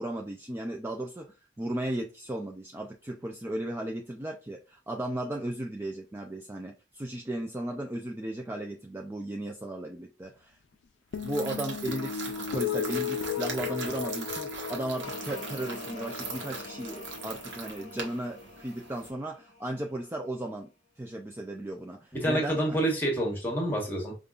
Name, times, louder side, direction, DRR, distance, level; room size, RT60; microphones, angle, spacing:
voice 1, 0.0-10.6 11.2-20.7 21.0-22.8, right 1 dB, 15° right, 1 dB, 0.3 m, -35 dB
sound 1, 11.1-17.7, left 8 dB, 85° left, 0.4 m, -36 dB
sound 2, 11.1-19.1, right 4 dB, 75° right, 1.0 m, -41 dB
sound 3, 15.0-20.5, left 3 dB, 40° left, 0.8 m, -46 dB
voice 2, 22.1-24.1, right 1 dB, 10° left, 0 dB, 1.2 m, -28 dB
5.1 x 2.4 x 2.4 m, 0.32 s
head